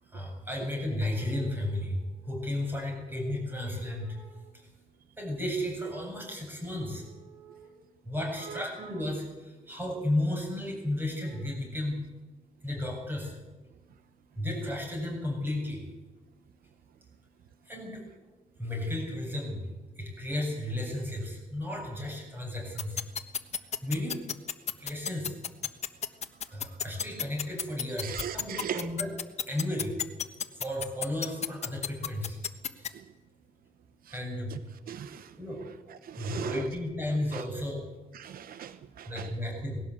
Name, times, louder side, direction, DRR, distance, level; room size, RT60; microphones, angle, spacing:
voice 1, 0.0-4.7 5.2-12.1 12.6-13.4 14.3-15.8 17.6-18.1 18.5-23.0 23.8-24.2 24.8-25.4 26.5-29.2 29.5-30.0 30.5-32.4 32.7-32.9 34.1-34.6 35.3-35.6 36.2-37.8 39.0-39.8, left 1 dB, 15° right, 0 dB, 7.8 m, -34 dB
sound 1, 22.8-32.9, left 8 dB, 45° left, 1.2 m, -31 dB
voice 2, 28.0-28.9 34.9-35.3 36.1-36.6 37.3-37.4 38.1-39.1, right 9 dB, 75° right, 12 dB, 0.9 m, -38 dB
19.5 x 17.0 x 8.2 m, 1.2 s
wide cardioid pair, 155°, 15 cm